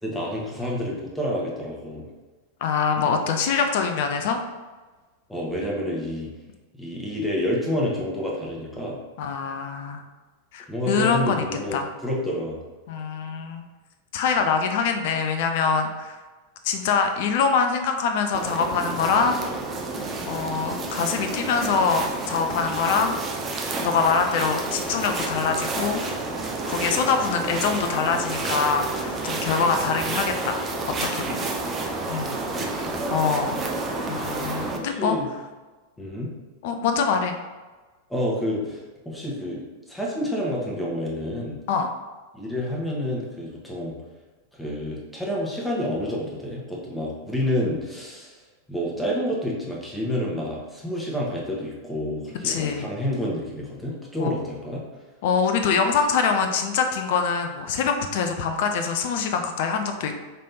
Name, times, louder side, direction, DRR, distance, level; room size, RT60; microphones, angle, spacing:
voice 1, 0.0-2.1 5.3-6.3 6.8-9.0 10.7-12.6 31.7-31.8 32.5-33.1 34.7-35.3 36.0-36.3 38.1-38.8 39.0-41.6 42.3-43.9 44.5-48.4 48.7-54.8, left 1 dB, 5° left, -4 dB, 1.2 m, -29 dB
voice 2, 2.6-4.4 9.2-10.0 10.5-11.4 11.7-11.9 12.9-13.6 14.1-16.2 16.6-19.4 20.3-23.1 23.8-26.1 26.6-30.6 31.1-31.5 32.1-32.4 33.1-33.6 34.1-35.2 36.6-37.3 41.7-41.9 52.4-52.9 54.2-54.3 55.2-60.2, left 5 dB, 50° left, 6 dB, 0.4 m, -24 dB
sound 1, 18.3-34.8, right 3 dB, 25° right, 0.6 m, -30 dB
5.2 x 3.3 x 2.7 m, 1.3 s
figure-of-eight pair, 90°, 0 cm